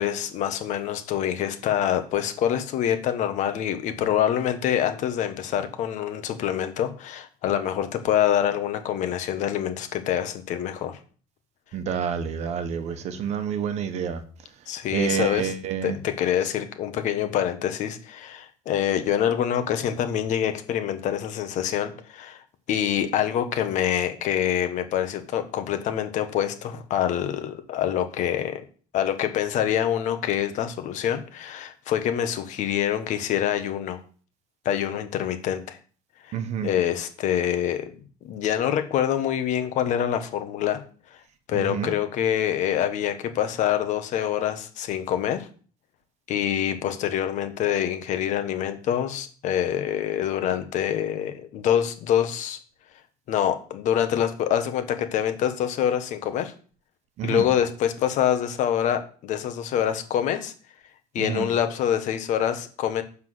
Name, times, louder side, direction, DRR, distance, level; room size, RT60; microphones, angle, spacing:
voice 1, 0.0-11.0 14.7-15.5 15.8-22.4 22.7-28.6 28.9-34.0 34.6-35.8 36.3-36.4 36.6-37.9 38.2-40.8 41.5-45.5 46.3-52.6 53.3-56.5 57.2-60.5 61.1-63.0, left 10 dB, 55° left, 1.4 m, -25 dB
voice 2, 11.7-14.2 14.9-16.0 36.3-36.7 41.5-41.9 57.2-57.5 61.2-61.5, right 7 dB, 45° right, 1.2 m, -28 dB
7.2 x 6.1 x 7.8 m
cardioid pair, 175°, 15 cm